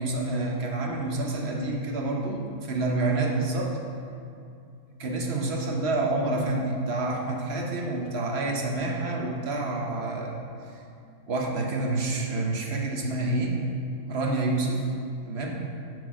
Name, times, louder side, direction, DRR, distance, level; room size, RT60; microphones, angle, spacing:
voice 1, 0.0-3.8 5.0-10.4 11.3-13.7 14.1-14.9 15.2-15.6, right 2 dB, 45° right, 0 dB, 1.1 m, -28 dB
7.8 x 5.0 x 6.1 m, 2.4 s
omnidirectional pair, 1.7 m